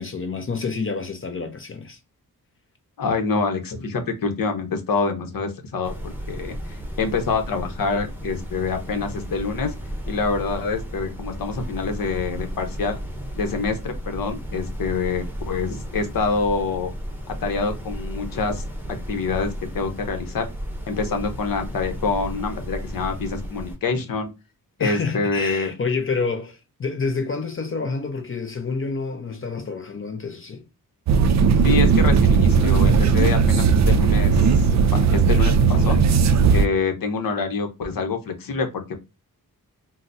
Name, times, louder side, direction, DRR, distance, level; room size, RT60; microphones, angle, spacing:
voice 1, 0.0-2.0 24.8-30.7, left 4 dB, 35° left, 0.5 m, -28 dB
voice 2, 3.0-9.7 10.1-13.0 13.4-16.9 17.3-18.6 19.1-20.5 20.9-24.3 24.8-25.7 31.6-36.0 36.5-38.9, left 4 dB, 70° left, 0.9 m, -26 dB
sound 1, 5.8-23.8, equal, 5° right, 0.8 m, -33 dB
sound 2, 31.1-36.7, right 5 dB, 50° right, 0.4 m, -17 dB
3.8 x 2.1 x 2.5 m
cardioid pair, 90°, 36 cm